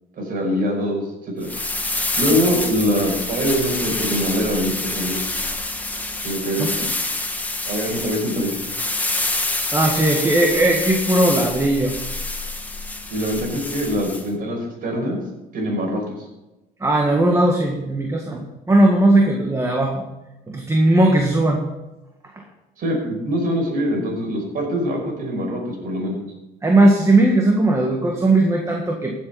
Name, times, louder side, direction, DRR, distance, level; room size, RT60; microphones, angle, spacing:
voice 1, 0.2-1.0 1.4-1.5 2.2-5.2 6.2-6.8 7.7-8.5 13.1-15.2 15.5-16.0 22.8-26.2, equal, 55° right, 1 dB, 5.2 m, -23 dB
sound 1, 1.4-14.3, left 2 dB, 10° left, 1.5 m, -27 dB
voice 2, 9.7-11.9 16.8-20.0 20.5-21.6 26.6-29.1, right 1 dB, 15° right, 1 dB, 1.7 m, -18 dB
15.0 x 7.7 x 5.7 m, 1.0 s
cardioid pair, 110°, 17 cm